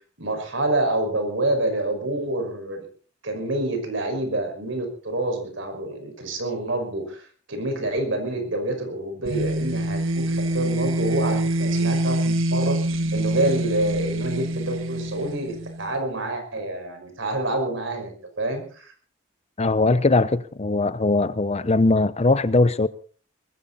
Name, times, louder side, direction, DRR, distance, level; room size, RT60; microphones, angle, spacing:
voice 1, 0.2-2.9 3.2-12.8 13.1-18.9, right 2 dB, 70° right, 5.7 m, -27 dB
sound 1, 9.2-15.9, right 1 dB, 90° right, 1.6 m, -25 dB
voice 2, 19.6-22.9, left 3 dB, 35° left, 0.7 m, -20 dB
20.0 x 15.5 x 4.2 m
head